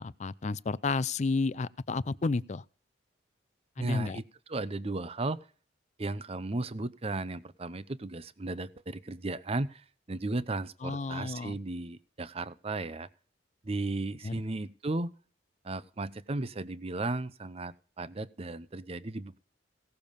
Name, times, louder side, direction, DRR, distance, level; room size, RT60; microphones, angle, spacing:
voice 1, 0.0-2.6 3.8-4.2 10.8-11.6 14.2-14.3, left 3 dB, 40° left, 0.5 m, -31 dB
voice 2, 3.8-5.4 6.0-13.1 13.6-15.1 15.6-19.4, right 2 dB, 30° right, 0.7 m, -35 dB
17.0 x 6.9 x 5.3 m
head